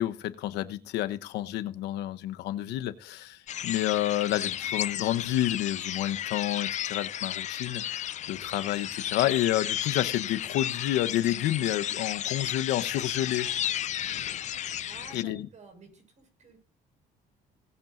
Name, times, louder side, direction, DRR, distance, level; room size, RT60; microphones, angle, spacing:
voice 1, 0.0-13.5 14.1-14.2 15.1-15.5, left 13 dB, 85° left, 1.0 m, -29 dB
sound 1, 3.5-15.2, left 11 dB, 45° left, 0.4 m, -33 dB
voice 2, 14.9-16.6, right 4 dB, 45° right, 6.1 m, -51 dB
19.0 x 8.9 x 2.6 m
cardioid pair, 110°, 17 cm